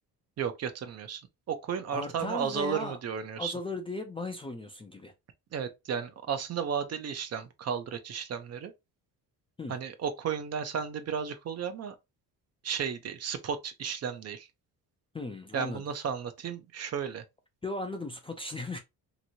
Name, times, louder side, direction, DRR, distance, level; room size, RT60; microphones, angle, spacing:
voice 1, 0.4-1.2 1.5-3.6 5.5-8.7 9.7-12.0 12.6-14.5 15.5-17.2, right 7 dB, 45° right, 0.5 m, -34 dB
voice 2, 1.9-3.0 3.4-5.1 9.6-9.7 15.1-15.8 17.6-18.8, left 2 dB, 15° left, 0.3 m, -37 dB
3.0 x 2.6 x 2.7 m
cardioid pair, 125°, 38 cm